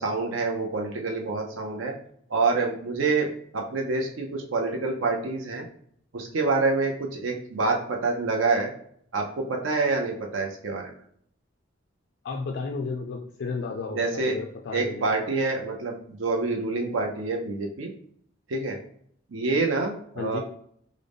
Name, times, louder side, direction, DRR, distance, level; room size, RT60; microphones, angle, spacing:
voice 1, 0.0-1.9 2.3-5.6 6.1-8.7 9.1-10.9 13.9-14.3 14.7-17.9 18.5-18.8 19.3-20.4, right 3 dB, 80° right, 1 dB, 0.5 m, -27 dB
voice 2, 12.2-15.1 20.2-20.4, left 4 dB, 60° left, 2 dB, 0.3 m, -33 dB
3.7 x 2.0 x 3.4 m, 0.65 s
head